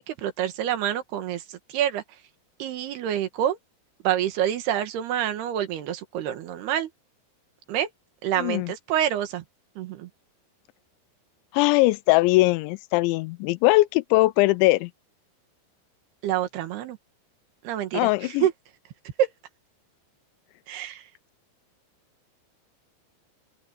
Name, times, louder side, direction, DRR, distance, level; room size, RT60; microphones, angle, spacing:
voice 1, 0.0-2.0 2.6-3.6 4.0-6.9 7.7-7.9 8.2-9.4 9.8-10.1 16.2-17.0 17.6-18.5 19.2-19.3 20.7-21.0, right 11 dB, 65° right, 3.3 m, -27 dB
voice 2, 8.4-8.7 11.5-14.9 17.9-18.5, left 20 dB, 85° left, 2.9 m, -21 dB
open air
omnidirectional pair, 5.3 m